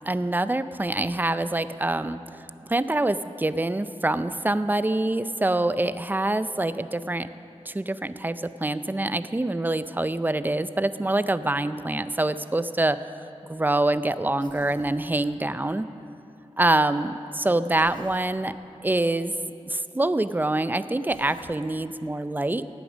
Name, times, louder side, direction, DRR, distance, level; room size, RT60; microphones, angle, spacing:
voice 1, 0.1-2.2 2.7-7.3 7.7-13.0 13.5-15.9 16.6-18.5 18.8-19.3 19.7-22.6, right 2 dB, 15° right, 13 dB, 0.5 m, -25 dB
Human voice, 14.4-15.0 17.7-18.2 21.1-21.6, left 2 dB, 40° left, 1.2 m, -49 dB
17.5 x 8.5 x 6.3 m, 2.7 s
wide cardioid pair, 75°, 12 cm